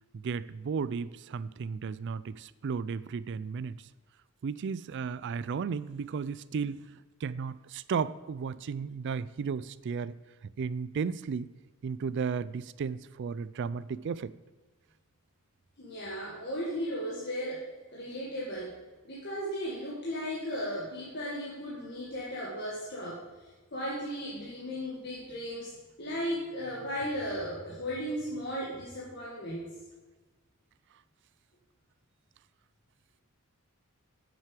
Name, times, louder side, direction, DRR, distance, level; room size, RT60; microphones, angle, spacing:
voice 1, 0.1-3.9 4.4-6.8 7.2-10.1 10.6-11.5 11.8-14.3, right 5 dB, 55° right, 17 dB, 0.4 m, -34 dB
voice 2, 15.8-29.7, equal, 50° left, -5 dB, 1.9 m, -36 dB
9.2 x 7.5 x 5.0 m, 1.3 s
head